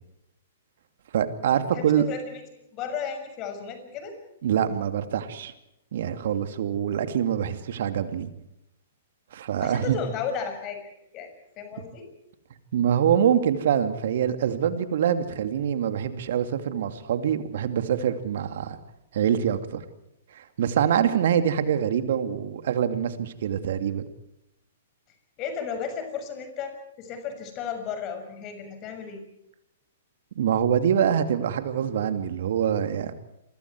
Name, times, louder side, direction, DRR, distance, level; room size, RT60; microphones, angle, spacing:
voice 1, 1.1-2.1 4.4-5.5 5.9-8.3 9.3-10.0 12.7-18.8 19.1-19.8 20.3-24.0 30.4-33.1, right 9 dB, 60° right, 9 dB, 2.5 m, -25 dB
voice 2, 1.7-4.2 9.6-11.3 11.6-12.1 25.4-29.2, left 6 dB, 35° left, 7 dB, 6.5 m, -34 dB
28.0 x 24.0 x 4.7 m, 0.84 s
figure-of-eight pair, 115°, 0 cm